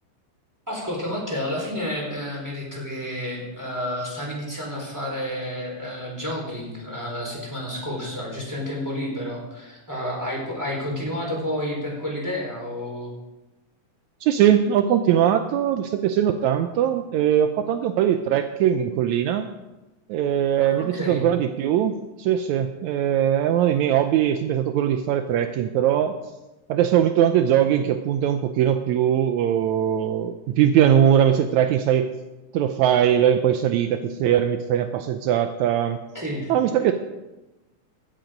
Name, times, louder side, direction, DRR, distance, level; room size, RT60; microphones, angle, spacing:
voice 1, 0.7-13.1 20.6-21.2 36.1-36.5, left 1 dB, 5° right, -2 dB, 3.7 m, -30 dB
voice 2, 14.2-19.5 20.1-26.1 26.7-32.1 32.5-36.0 36.5-36.9, right 10 dB, 85° right, 8 dB, 1.6 m, -21 dB
15.5 x 9.1 x 5.1 m, 1.0 s
omnidirectional pair, 4.0 m